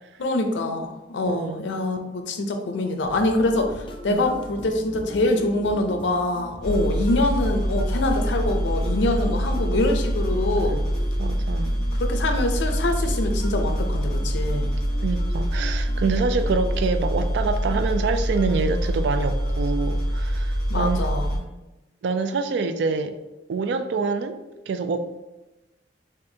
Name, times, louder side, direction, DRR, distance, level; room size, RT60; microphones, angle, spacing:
voice 1, 0.2-10.8 11.9-14.7 20.7-21.4, left 2 dB, 90° left, 0.5 m, -25 dB
voice 2, 1.2-1.6 4.1-4.2 11.2-11.8 15.0-21.0 22.0-23.2 23.5-24.4 24.7-25.2, right 4 dB, 75° right, 0.3 m, -26 dB
sound 1, 3.0-20.3, left 1 dB, 30° left, 0.4 m, -41 dB
sound 2, 6.6-21.4, equal, 5° left, 1.3 m, -25 dB
4.3 x 2.5 x 2.7 m
head